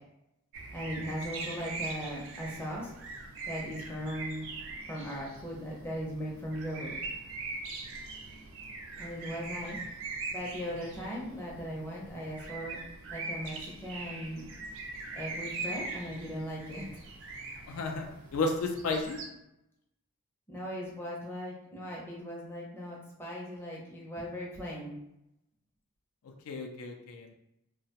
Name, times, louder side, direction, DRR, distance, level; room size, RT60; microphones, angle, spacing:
sound 1, 0.5-19.2, right 3 dB, 60° right, 0.4 m, -42 dB
voice 1, 0.7-2.9 3.5-4.5 4.9-7.0 9.0-9.8 10.3-12.8 13.1-14.5 15.1-17.0 20.5-24.9, equal, 10° left, -4 dB, 0.5 m, -38 dB
voice 2, 17.7-19.2 26.5-27.3, left 3 dB, 70° left, 3 dB, 0.4 m, -33 dB
2.7 x 2.1 x 2.8 m, 0.85 s
head